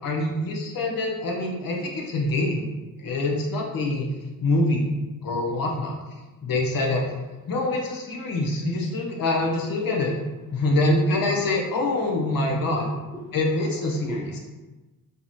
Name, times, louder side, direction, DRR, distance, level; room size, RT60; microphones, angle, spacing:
voice 1, 0.0-2.7 3.0-4.1 4.4-4.9 5.2-5.9 6.4-7.0 7.5-10.1 10.5-12.9 13.3-14.2, left 2 dB, 70° left, -1 dB, 0.8 m, -25 dB
voice 2, 12.6-13.4 13.9-14.4, right 1 dB, 10° left, -3 dB, 0.9 m, -39 dB
5.3 x 2.1 x 2.9 m, 1.2 s
cardioid pair, 65°, 36 cm